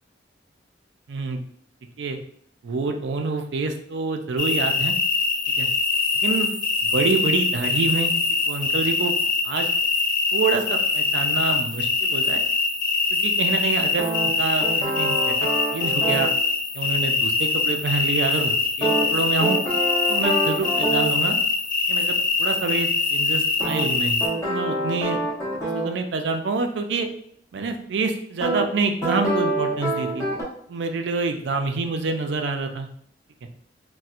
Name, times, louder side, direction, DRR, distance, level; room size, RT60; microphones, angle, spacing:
voice 1, 1.1-1.4 2.0-2.2 2.6-5.0 5.6-5.7 6.1-6.5 6.9-8.1 8.5-9.1 9.4-9.7 10.3-12.4 13.1-16.3 16.7-19.6 20.1-21.4 21.9-24.2 24.4-25.2 25.7-27.1 27.5-30.3 30.7-32.9, right 4 dB, 70° right, 5 dB, 0.4 m, -27 dB
sound 1, 4.4-24.3, left 4 dB, 45° left, 0.7 m, -23 dB
sound 2, 14.0-16.3 18.8-21.2 23.6-25.9 28.4-28.6 29.0-30.4, right 1 dB, 20° left, 1.1 m, -26 dB
4.2 x 2.1 x 2.4 m, 0.64 s
head